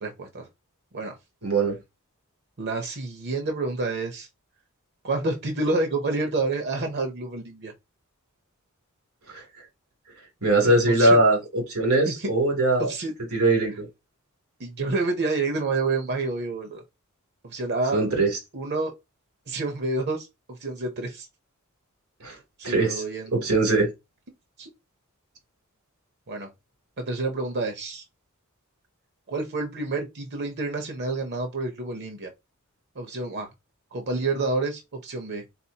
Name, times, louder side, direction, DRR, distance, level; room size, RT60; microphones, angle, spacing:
voice 1, 0.0-0.5 0.9-1.2 2.6-4.3 5.0-7.7 10.5-11.2 12.1-12.3 12.8-13.1 14.6-16.8 17.4-18.0 18.5-18.9 19.5-21.3 22.6-23.3 24.6-24.7 26.3-26.5 27.0-28.1 29.3-32.3 32.9-33.5 33.9-35.4, right 3 dB, 50° right, 0.7 m, -29 dB
voice 2, 1.4-1.8 9.3-9.4 10.4-12.9 13.3-13.9 17.9-18.3 22.2-22.4 22.6-23.0 23.3-23.9, right 2 dB, 90° right, 2.8 m, -21 dB
4.2 x 3.8 x 2.8 m
head